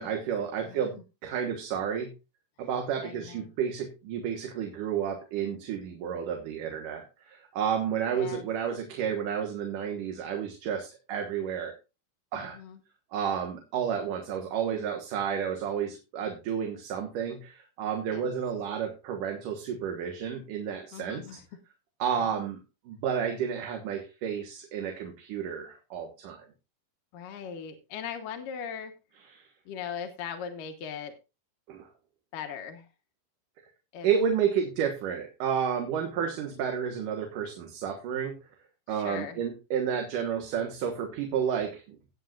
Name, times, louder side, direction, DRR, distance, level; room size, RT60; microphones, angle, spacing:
voice 1, 0.0-2.1 2.6-11.7 12.3-12.6 13.1-21.4 22.0-22.6 22.9-26.4 29.3-29.5 31.7-31.9 34.0-38.4 38.9-42.0, right 8 dB, 75° right, 3 dB, 3.0 m, -31 dB
voice 2, 3.0-3.5 8.1-8.5 12.3-12.8 18.1-18.3 20.9-21.4 22.2-22.3 27.1-28.9 29.7-31.1 32.3-32.9 33.9-34.1 36.2-36.3 38.9-39.4, left 7 dB, 75° left, 5 dB, 2.8 m, -39 dB
17.5 x 8.0 x 2.5 m, 0.29 s
omnidirectional pair, 3.9 m